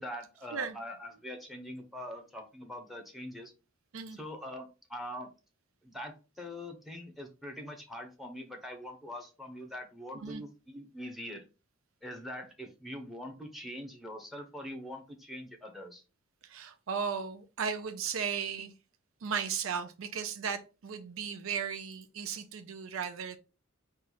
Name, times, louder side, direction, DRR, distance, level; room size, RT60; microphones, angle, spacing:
voice 1, 0.0-3.5 4.1-5.3 5.8-11.4 12.0-16.0, left 1 dB, ahead, 4 dB, 0.9 m, -43 dB
voice 2, 16.4-18.7 19.2-23.4, right 6 dB, 70° right, 9 dB, 0.5 m, -36 dB
4.3 x 2.4 x 4.1 m, 0.31 s
head